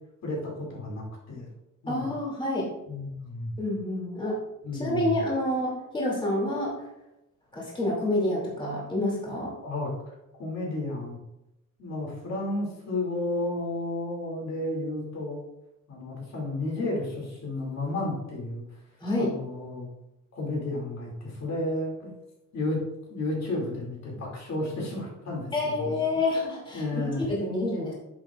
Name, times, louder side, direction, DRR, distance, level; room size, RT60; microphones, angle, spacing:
voice 1, 0.2-1.5 1.8-2.1 2.9-3.5 4.6-5.2 9.6-9.9 10.4-11.2 11.8-15.4 15.9-18.7 19.2-19.9 20.3-22.1 22.5-22.8 23.1-25.5 25.8-26.0 26.7-27.3, left 2 dB, 55° left, -2 dB, 2.5 m, -32 dB
voice 2, 1.9-2.7 3.6-4.4 4.7-6.9 7.5-9.6 19.0-19.4 25.5-27.9, left 1 dB, 15° left, -4 dB, 2.4 m, -28 dB
10.0 x 7.2 x 2.4 m, 0.89 s
cardioid pair, 155°, 33 cm